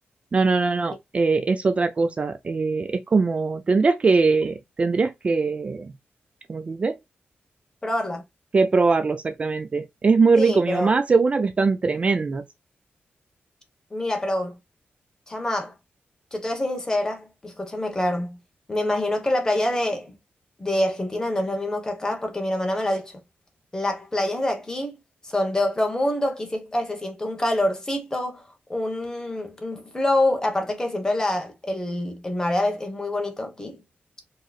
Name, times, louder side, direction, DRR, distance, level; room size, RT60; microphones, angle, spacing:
voice 1, 0.3-5.9 6.5-7.0 8.5-12.4, right 4 dB, 30° right, 0.4 m, -21 dB
voice 2, 7.8-8.2 10.4-10.9 13.9-14.6 15.3-15.7 16.3-18.4 18.7-20.2 20.6-23.1 23.7-24.9 25.2-33.8, left 1 dB, 15° left, 1.2 m, -26 dB
4.6 x 3.1 x 2.4 m
wide cardioid pair, 165°, 4 cm